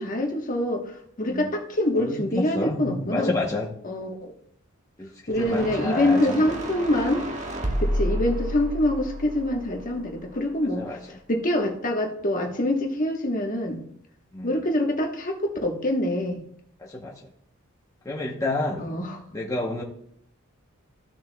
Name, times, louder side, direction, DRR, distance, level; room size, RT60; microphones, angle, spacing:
voice 1, 0.0-3.3 3.8-4.3 5.3-7.2 7.8-13.8 14.4-16.4 18.8-19.2, left 1 dB, 40° left, 2 dB, 1.2 m, -25 dB
voice 2, 2.0-3.7 5.0-6.4 10.7-11.0 14.3-14.5 16.8-17.1 18.0-19.0 19.3-19.8, left 2 dB, 15° left, -3 dB, 0.8 m, -29 dB
sound 1, 5.3-10.6, equal, 35° right, 1.3 m, -31 dB
14.5 x 6.6 x 2.2 m, 0.68 s
head